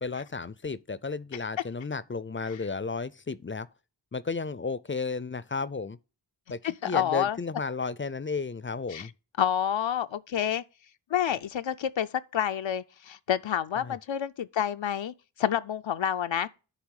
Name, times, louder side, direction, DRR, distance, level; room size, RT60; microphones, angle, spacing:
voice 1, 0.0-3.7 4.1-6.0 6.5-6.6 6.8-9.1 13.8-14.0, left 4 dB, 30° left, 0.4 m, -33 dB
voice 2, 6.6-7.4 8.9-9.1 9.4-10.6 11.1-16.5, left 9 dB, 80° left, 0.5 m, -29 dB
9.8 x 3.4 x 6.4 m
wide cardioid pair, 50°, 45 cm